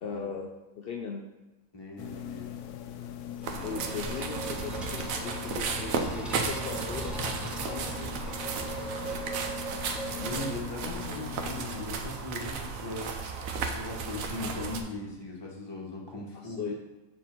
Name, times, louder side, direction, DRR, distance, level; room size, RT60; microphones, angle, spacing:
voice 1, 0.0-1.3 3.6-8.2 8.6-8.8 16.3-16.7, left 5 dB, 65° left, 1 dB, 0.5 m, -39 dB
voice 2, 1.7-2.5 3.5-4.0 8.8-9.2 10.1-13.2 13.5-16.7, left 2 dB, 20° left, -2 dB, 1.1 m, -39 dB
sound 1, 2.0-11.8, left 10 dB, 85° left, 1.1 m, -42 dB
sound 2, 3.2-10.9, right 2 dB, ahead, 0.5 m, -39 dB
sound 3, 3.4-14.8, right 5 dB, 65° right, 1.1 m, -35 dB
7.1 x 4.1 x 4.4 m, 1.1 s
omnidirectional pair, 1.6 m